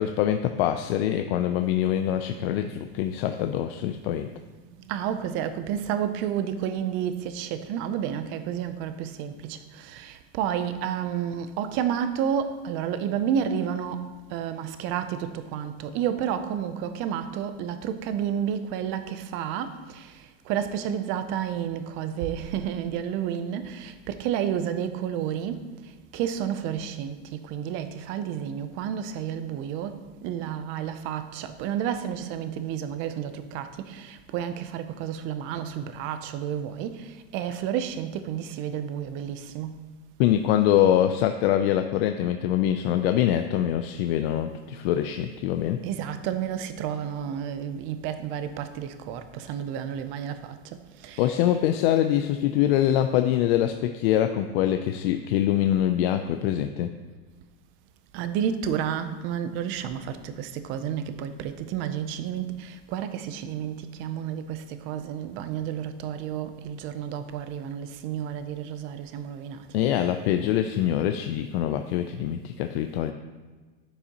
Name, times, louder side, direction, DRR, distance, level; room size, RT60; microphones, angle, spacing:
voice 1, 0.0-4.3 40.2-45.8 51.2-56.9 69.7-73.1, left 11 dB, 65° left, 7 dB, 0.5 m, -24 dB
voice 2, 4.8-14.0 14.3-20.1 20.5-25.6 26.1-30.0 30.2-39.8 45.8-50.6 51.0-51.4 58.1-69.9, right 9 dB, 40° right, 10 dB, 0.5 m, -31 dB
9.8 x 6.9 x 2.9 m, 1.3 s
supercardioid pair, 165°, 32 cm